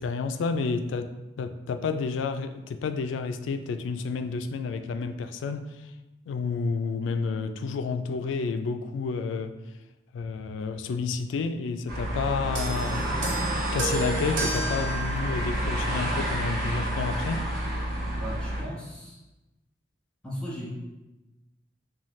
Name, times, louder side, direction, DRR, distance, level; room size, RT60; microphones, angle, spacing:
voice 1, 0.0-5.9 6.3-9.5 10.1-13.1 13.7-17.5, left 4 dB, 80° left, 9 dB, 0.3 m, -30 dB
sound 1, 11.9-18.6, right 1 dB, 50° right, 1.0 m, -29 dB
sound 2, 12.6-16.2 17.1-17.2, right 3 dB, 90° right, 0.8 m, -34 dB
voice 2, 18.2-19.2 20.2-20.9, equal, 5° left, -6 dB, 1.0 m, -37 dB
5.5 x 2.3 x 3.1 m, 1.0 s
head